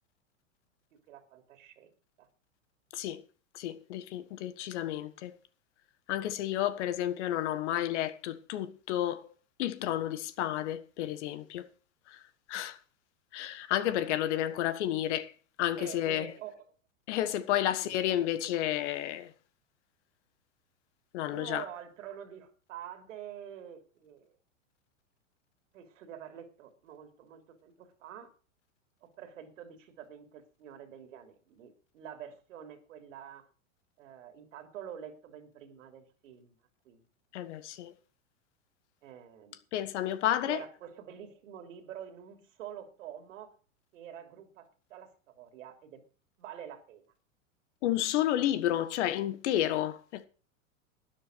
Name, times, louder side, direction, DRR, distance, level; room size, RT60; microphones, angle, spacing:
voice 1, 0.9-2.3 15.8-16.6 17.7-17.9 21.2-24.4 25.7-28.3 29.0-33.4 34.0-36.6 36.8-37.0 39.0-39.6 40.5-43.5 43.9-46.0 46.4-47.0, right 9 dB, 70° right, 3.2 m, -47 dB
voice 2, 3.5-5.4 6.1-9.3 9.6-11.7 12.1-12.2 12.5-12.8 13.3-15.3 15.6-16.3 17.1-19.3 21.1-21.6 37.3-37.9 39.7-40.6 47.8-50.3, left 12 dB, 60° left, 1.6 m, -31 dB
12.0 x 10.0 x 6.3 m
hypercardioid pair, 120°, 40 cm